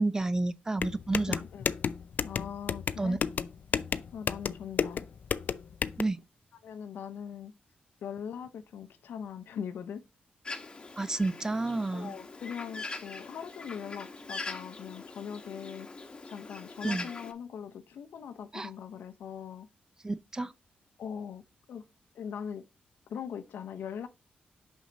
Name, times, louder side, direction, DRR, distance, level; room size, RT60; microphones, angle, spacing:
voice 1, 0.0-1.4 3.0-3.2 6.0-6.2 11.0-12.1 16.8-17.1 18.5-18.7 20.0-20.5, right 2 dB, 20° right, 0.5 m, -30 dB
sound 1, 0.8-6.0, left 7 dB, 60° left, 0.4 m, -32 dB
voice 2, 1.3-1.7 2.2-3.2 4.1-5.0 6.6-7.5 8.0-10.0 11.9-15.9 16.3-19.7 21.0-21.4 21.7-21.9 22.1-22.7 23.1-24.1, left 8 dB, 85° left, 0.7 m, -41 dB
Bird, 10.4-17.3, left 3 dB, 30° left, 1.2 m, -42 dB
6.0 x 5.7 x 3.9 m
cardioid pair, 90°, 3 cm